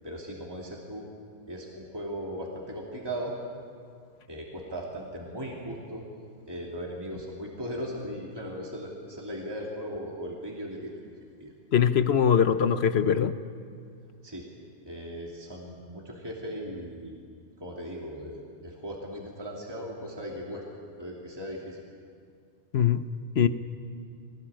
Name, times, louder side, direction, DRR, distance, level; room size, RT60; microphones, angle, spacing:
voice 1, 0.0-1.1 1.5-3.3 4.3-6.1 6.5-10.9 11.4-11.5 14.2-14.5 14.8-17.2 17.6-20.6 21.0-21.8, equal, 20° right, -3 dB, 3.0 m, -38 dB
voice 2, 11.7-13.3 22.7-23.0 23.4-23.5, left 8 dB, 60° left, 12 dB, 1.1 m, -22 dB
22.5 x 19.5 x 8.9 m, 2.3 s
omnidirectional pair, 1.3 m